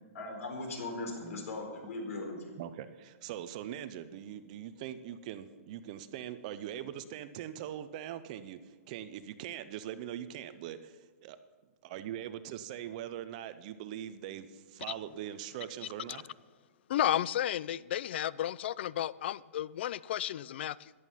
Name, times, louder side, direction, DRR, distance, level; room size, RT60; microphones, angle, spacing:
voice 1, 0.1-2.4, left 2 dB, 70° left, 4.4 m, -39 dB
voice 2, 2.6-11.4 11.8-16.3, right 11 dB, 30° right, 0.6 m, -42 dB
voice 3, 16.9-20.9, left 11 dB, 45° left, 0.4 m, -32 dB
14.5 x 11.0 x 5.7 m
hypercardioid pair, 170°, 8 cm